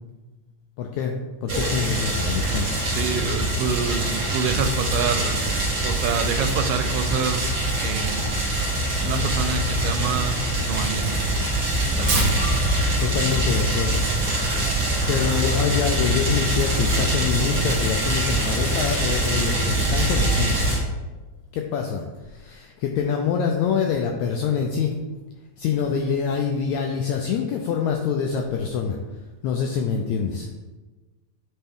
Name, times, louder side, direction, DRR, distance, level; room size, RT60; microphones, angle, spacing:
voice 1, 0.8-1.1 1.4-2.9 13.0-14.1 14.6-20.6 21.5-24.9 25.6-29.0 29.4-30.5, left 6 dB, 85° left, 2 dB, 1.6 m, -25 dB
sound 1, 1.5-20.8, right 1 dB, 65° right, 0.7 m, -24 dB
voice 2, 2.9-5.4 5.8-7.5 7.8-8.6 9.0-11.1 12.0-12.3, right 6 dB, 85° right, 7 dB, 2.2 m, -27 dB
Tearing, 12.0-18.5, right 2 dB, 50° right, 1.6 m, -33 dB
8.5 x 3.4 x 3.5 m, 1.2 s
omnidirectional pair, 3.8 m